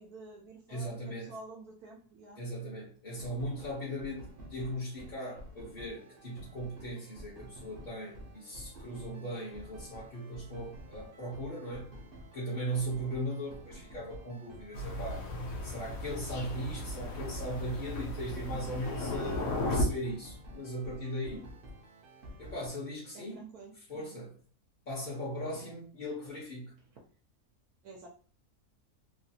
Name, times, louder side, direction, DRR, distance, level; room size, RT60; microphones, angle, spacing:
voice 1, 0.0-2.5 18.5-18.8 23.1-24.1 25.5-25.7 27.8-28.1, right 3 dB, 85° right, -1 dB, 1.2 m, -50 dB
voice 2, 0.7-1.3 2.4-11.9 12.3-15.3 15.6-21.5 22.4-23.4 23.9-24.4 24.9-26.8, equal, 40° left, -7 dB, 0.9 m, -38 dB
sound 1, 3.1-22.7, equal, 50° right, 0.8 m, -50 dB
Thunder, 14.7-19.8, left 1 dB, 70° left, 1.0 m, -36 dB
3.1 x 2.4 x 2.7 m, 0.42 s
omnidirectional pair, 1.5 m